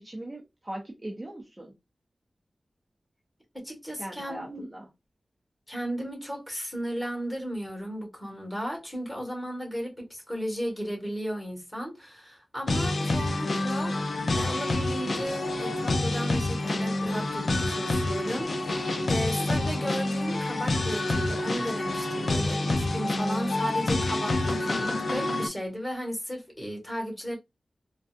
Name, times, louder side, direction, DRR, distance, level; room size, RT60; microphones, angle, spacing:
voice 1, 0.0-1.7 4.0-4.8, right 1 dB, 20° right, 0.8 m, -39 dB
voice 2, 3.5-4.7 5.7-14.1 14.3-27.3, equal, 10° left, 1.6 m, -35 dB
sound 1, 12.7-25.5, left 2 dB, 60° left, 0.6 m, -28 dB
3.8 x 2.3 x 2.4 m
wide cardioid pair, 110°, 0 cm